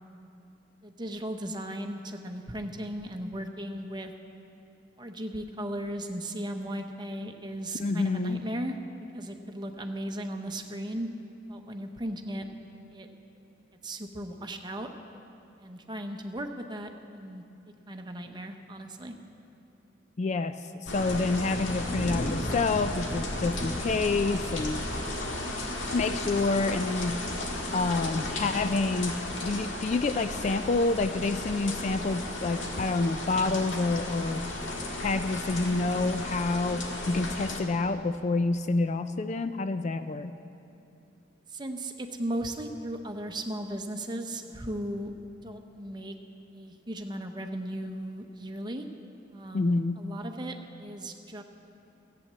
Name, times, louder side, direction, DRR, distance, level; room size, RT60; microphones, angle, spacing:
voice 1, 0.8-4.1 5.0-8.8 9.1-11.1 11.5-12.5 12.9-13.1 13.8-14.9 15.6-17.4 17.9-19.1 41.5-45.1 45.4-46.1 46.5-48.9 49.3-51.4, right 1 dB, 25° right, 5 dB, 0.8 m, -36 dB
voice 2, 7.8-8.4 20.2-24.8 25.9-27.2 27.7-34.4 35.0-40.3 49.5-50.0, left 3 dB, 35° left, 10 dB, 0.3 m, -28 dB
sound 1, 20.8-37.6, left 1 dB, 90° left, 1.7 m, -34 dB
15.0 x 8.7 x 7.4 m, 2.7 s
head